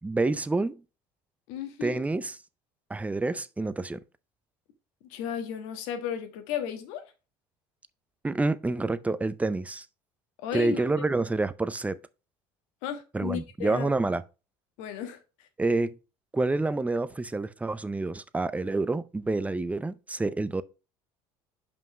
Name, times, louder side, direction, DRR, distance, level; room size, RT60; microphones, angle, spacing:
voice 1, 0.0-0.8 1.8-2.4 2.9-4.0 8.2-9.9 10.5-12.0 13.1-14.2 15.6-15.9 16.3-20.6, right 2 dB, 10° right, 0.6 m, -28 dB
voice 2, 1.5-2.0 5.1-7.0 10.4-10.8 12.8-13.9 14.8-15.2, left 9 dB, 80° left, 1.4 m, -34 dB
5.6 x 5.3 x 4.6 m
supercardioid pair, 85°, 12 cm